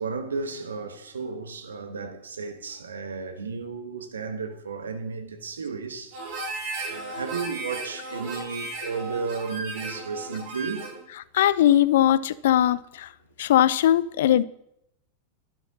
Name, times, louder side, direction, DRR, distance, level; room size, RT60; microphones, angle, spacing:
voice 1, 0.0-6.2 6.9-10.9, right 5 dB, 70° right, 1.5 m, -33 dB
Harmonica, 6.1-11.0, right 2 dB, 50° right, 4.6 m, -35 dB
voice 2, 11.3-13.1 13.4-14.4, left 11 dB, 55° left, 0.6 m, -20 dB
12.0 x 12.0 x 4.1 m
figure-of-eight pair, 90°, 0 cm